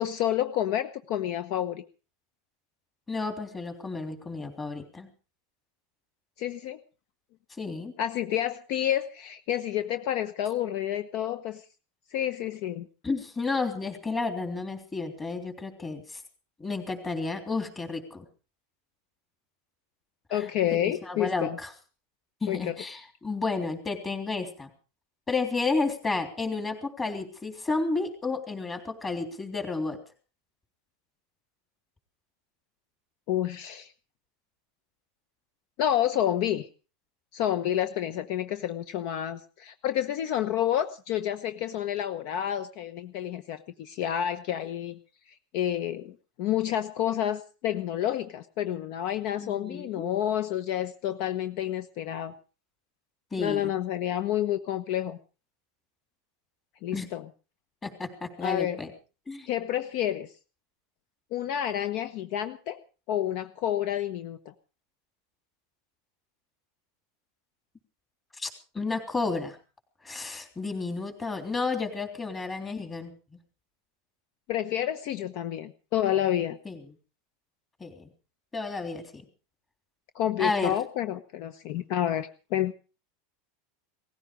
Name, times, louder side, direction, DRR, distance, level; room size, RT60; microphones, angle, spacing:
voice 1, 0.0-1.8 6.4-6.8 8.0-11.6 12.1-12.9 20.3-21.6 22.5-22.8 33.3-33.9 35.8-36.7 37.3-45.0 45.5-52.3 53.4-55.2 56.8-57.2 58.4-58.8 59.5-60.3 61.3-62.8 63.1-64.5 74.5-76.6 80.1-82.7, left 11 dB, 55° left, 11 dB, 1.1 m, -29 dB
voice 2, 3.1-5.1 7.6-7.9 13.0-16.2 16.6-18.3 20.3-20.4 20.7-21.7 22.4-24.7 25.3-30.0 49.4-50.1 53.3-53.7 56.9-57.1 57.8-58.9 59.3-59.5 68.4-69.6 70.0-73.1 76.7-76.8 77.8-78.1 78.5-79.2 80.4-80.7, left 3 dB, 15° left, 5 dB, 3.4 m, -31 dB
18.0 x 15.0 x 5.1 m, 0.37 s
supercardioid pair, 150°, 0 cm